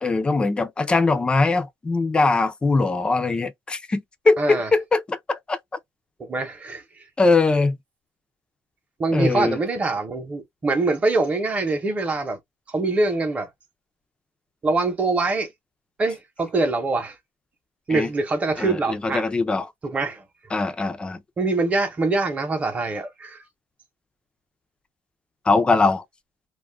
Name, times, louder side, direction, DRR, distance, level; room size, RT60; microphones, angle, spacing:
voice 1, 0.0-5.6 7.2-7.7 9.1-9.6 17.9-18.1 18.6-19.7 20.5-21.2 25.5-26.0, left 3 dB, 15° left, 0.4 m, -21 dB
voice 2, 4.4-4.7 6.2-6.8 9.0-12.4 12.7-13.5 14.6-15.5 16.0-17.2 17.9-19.3 19.8-20.2 21.4-23.4, right 3 dB, 20° right, 0.8 m, -24 dB
2.4 x 2.1 x 3.3 m
cardioid pair, 155°, 6 cm